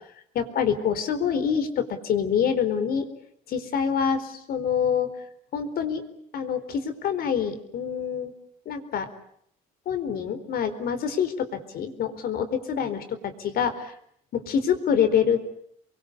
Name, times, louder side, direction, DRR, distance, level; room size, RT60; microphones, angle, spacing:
voice 1, 0.3-3.1 3.5-5.1 5.5-6.0 6.3-8.3 8.7-9.1 9.9-13.9 14.3-15.4, left 7 dB, 65° left, 9 dB, 4.4 m, -26 dB
29.0 x 23.0 x 8.3 m, 0.69 s
cardioid pair, 110°, 17 cm